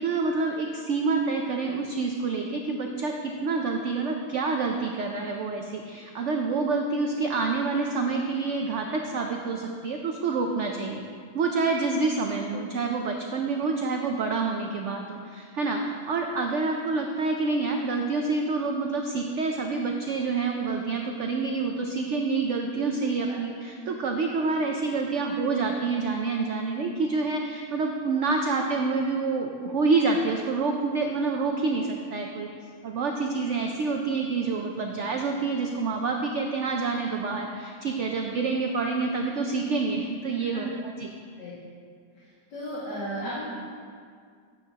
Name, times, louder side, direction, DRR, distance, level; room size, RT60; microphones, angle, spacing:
voice 1, 0.0-11.0 11.3-32.5 32.8-41.1, right 4 dB, 70° right, 2 dB, 0.7 m, -27 dB
voice 2, 42.5-43.4, equal, 75° left, -10 dB, 2.5 m, -34 dB
9.7 x 9.0 x 2.8 m, 2.1 s
omnidirectional pair, 1.8 m